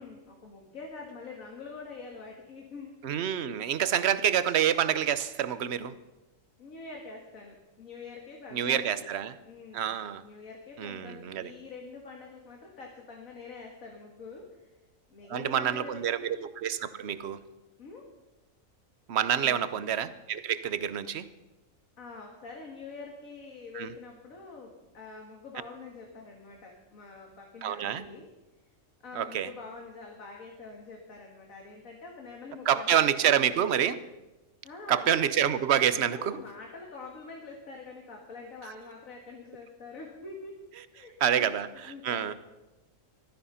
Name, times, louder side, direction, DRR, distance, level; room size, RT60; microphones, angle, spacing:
voice 1, 0.0-3.0 6.6-9.1 9.4-14.7 15.1-16.3 17.8-18.1 19.3-19.7 22.0-28.3 29.0-33.5 34.6-35.2 35.9-40.6 40.9-42.4, left 4 dB, 80° left, 0 dB, 2.2 m, -45 dB
voice 2, 3.0-5.9 8.5-9.4 9.7-10.2 10.8-11.5 15.3-17.4 19.1-21.3 23.7-23.9 27.6-28.0 29.1-29.5 32.7-34.0 34.9-36.4 41.2-42.4, right 9 dB, 55° right, 14 dB, 1.0 m, -27 dB
16.0 x 13.0 x 5.6 m, 1.1 s
omnidirectional pair, 1.4 m